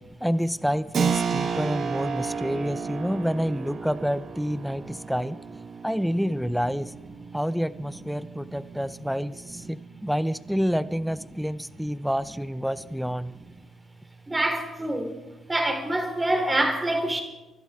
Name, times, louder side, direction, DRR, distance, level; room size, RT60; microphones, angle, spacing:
voice 1, 0.2-5.4 5.8-6.9 7.3-13.3, equal, ahead, 15 dB, 0.6 m, -28 dB
Keyboard (musical), 0.9-11.3, right 6 dB, 60° right, 1.3 m, -33 dB
voice 2, 14.3-15.2 15.5-17.2, right 1 dB, 20° right, 4 dB, 3.1 m, -26 dB
25.0 x 12.0 x 3.6 m, 1.1 s
cardioid pair, 90°, 0 cm